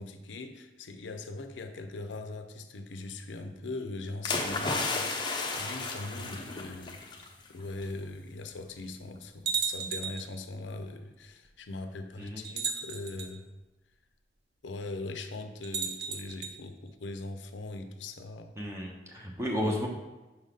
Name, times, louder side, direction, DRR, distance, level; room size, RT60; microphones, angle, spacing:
voice 1, 0.0-13.5 14.6-18.5 19.6-19.8, left 2 dB, 90° left, 7 dB, 0.6 m, -41 dB
sound 1, 4.2-7.3 7.6-7.8, left 3 dB, 25° left, 0.6 m, -33 dB
sound 2, 9.5-10.3 11.5-11.6 12.4-13.3 15.6-16.5, right 6 dB, 55° right, 0.7 m, -34 dB
voice 2, 18.6-19.9, equal, 15° right, -1 dB, 0.8 m, -33 dB
5.8 x 4.0 x 5.1 m, 1.1 s
head